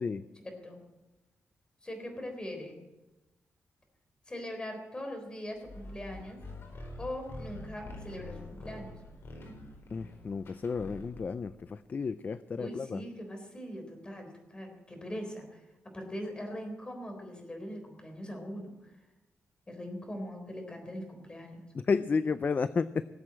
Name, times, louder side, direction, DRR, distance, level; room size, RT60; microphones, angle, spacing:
voice 1, 0.4-0.8 1.8-2.8 4.3-6.4 7.0-9.0 12.6-15.6 15.9-18.9 19.7-21.6, equal, 20° left, 3 dB, 3.9 m, -41 dB
sound 1, 5.6-11.4, left 2 dB, 55° left, 4.4 m, -46 dB
voice 2, 9.9-13.0 21.7-23.0, left 5 dB, 40° left, 14 dB, 0.4 m, -32 dB
18.5 x 8.1 x 8.8 m, 1.0 s
wide cardioid pair, 130°, 5 cm